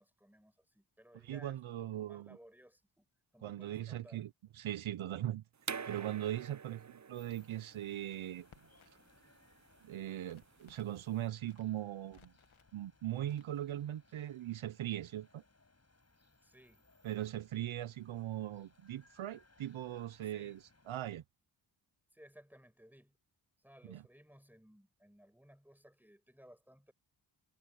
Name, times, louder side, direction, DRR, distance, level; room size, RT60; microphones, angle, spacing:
voice 1, 0.0-3.1 3.3-4.2 16.4-16.9 20.3-20.6 22.1-23.2 23.6-26.9, equal, 5° right, 5.9 m, -60 dB
voice 2, 1.2-2.4 3.4-5.4 5.9-8.5 9.8-12.3 12.7-15.4 17.0-20.6 20.9-21.2 23.9-24.0, right 12 dB, 80° right, 0.7 m, -40 dB
sound 1, 5.6-11.2, right 6 dB, 35° right, 0.8 m, -47 dB
sound 2, 7.1-21.0, left 3 dB, 30° left, 7.5 m, -68 dB
Crackle, 7.8-9.2 9.4-11.0 11.4-12.7 13.2-13.9, left 8 dB, 80° left, 1.8 m, -66 dB
cardioid pair, 65°, 47 cm